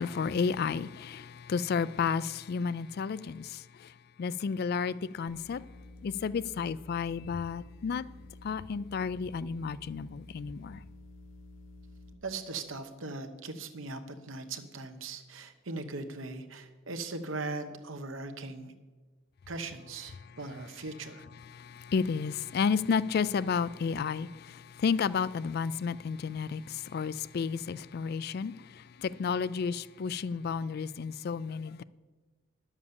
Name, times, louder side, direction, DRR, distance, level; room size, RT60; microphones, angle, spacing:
voice 1, 0.0-3.9 4.2-5.6 6.0-8.0 8.4-10.8 21.5-31.8, left 6 dB, 50° left, 0.3 m, -32 dB
sound 1, 5.3-12.1, left 2 dB, 85° left, 1.4 m, -51 dB
voice 2, 12.2-18.7 19.5-21.3, right 3 dB, 80° right, 1.0 m, -39 dB
10.5 x 7.3 x 7.0 m
head